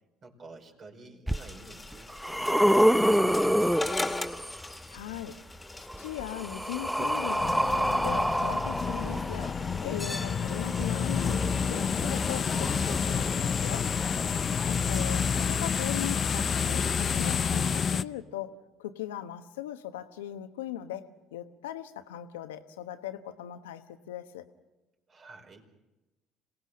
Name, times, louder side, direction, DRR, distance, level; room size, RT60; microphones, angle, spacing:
voice 1, 0.2-4.1 14.4-14.8 25.1-25.7, right 3 dB, 45° right, 3 dB, 4.8 m, -50 dB
sound 1, 1.3-15.5, left 2 dB, 15° left, 2.0 m, -39 dB
sound 2, 1.3-1.4 1.9-4.7 5.9-9.8 10.7-10.8, equal, ahead, 0.7 m, -26 dB
voice 2, 4.9-5.4 6.0-13.9 14.7-24.5, left 12 dB, 85° left, 9 dB, 1.1 m, -39 dB
sound 3, 7.4-18.0, left 6 dB, 40° left, 0.6 m, -29 dB
27.0 x 18.0 x 6.3 m, 1.0 s
hypercardioid pair, 65°, 0 cm